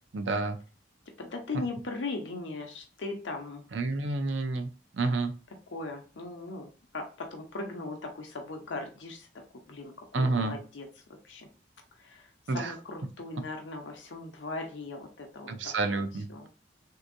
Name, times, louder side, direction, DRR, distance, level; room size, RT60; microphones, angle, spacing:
voice 1, 0.1-0.6 3.7-5.3 10.1-10.6 12.5-12.7 15.5-16.5, right 3 dB, 80° right, 7 dB, 0.5 m, -29 dB
voice 2, 1.2-3.6 5.7-6.7 6.9-9.3 9.7-10.9 11.2-11.5 12.0-16.0 16.3-16.5, left 3 dB, 85° left, 3 dB, 0.7 m, -39 dB
3.5 x 2.8 x 2.5 m, 0.35 s
head